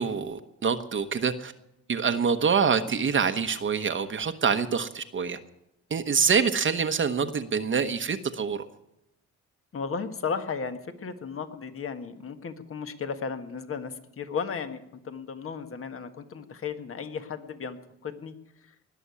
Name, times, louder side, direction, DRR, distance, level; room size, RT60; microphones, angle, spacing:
voice 1, 0.0-1.5 1.9-5.4 5.9-8.7, right 6 dB, 40° right, 8 dB, 1.1 m, -26 dB
voice 2, 9.7-18.3, left 5 dB, 45° left, 8 dB, 1.6 m, -35 dB
20.0 x 7.0 x 9.7 m, 0.86 s
cardioid pair, 90°, 30 cm